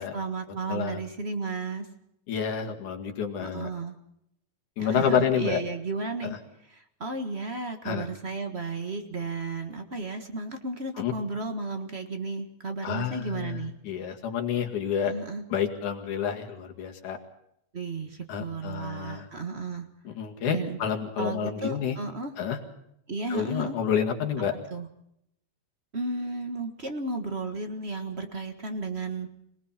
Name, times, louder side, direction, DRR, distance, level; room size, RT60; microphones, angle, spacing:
voice 1, 0.0-1.8 3.4-3.9 4.8-6.4 6.7-13.7 15.0-15.4 17.7-19.9 20.5-20.8 21.2-22.3 23.1-23.8 24.7-24.9 25.9-29.3, right 3 dB, 35° right, 6 dB, 1.1 m, -33 dB
voice 2, 0.7-1.0 2.3-3.7 4.8-5.6 6.2-6.4 7.8-8.1 11.0-11.1 12.8-15.1 15.5-17.2 18.3-19.3 20.1-22.0 22.4-22.6 23.3-24.5, left 8 dB, 85° left, 3 dB, 3.6 m, -29 dB
25.5 x 19.0 x 5.8 m, 0.75 s
omnidirectional pair, 3.4 m